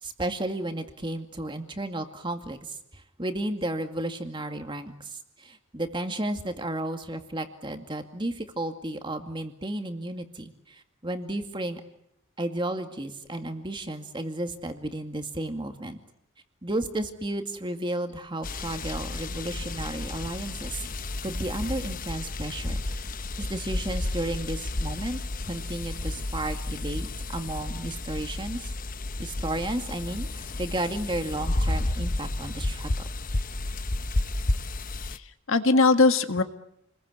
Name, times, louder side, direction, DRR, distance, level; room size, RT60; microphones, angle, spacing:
voice 1, 0.0-11.8 12.4-16.0 16.6-22.8 23.4-28.7 29.2-32.9, right 1 dB, 20° right, 6 dB, 2.2 m, -33 dB
sound 1, 18.4-35.2, left 2 dB, 40° left, 1.0 m, -32 dB
voice 2, 35.0-36.4, left 3 dB, 70° left, 8 dB, 1.7 m, -21 dB
29.0 x 21.5 x 8.4 m, 0.79 s
head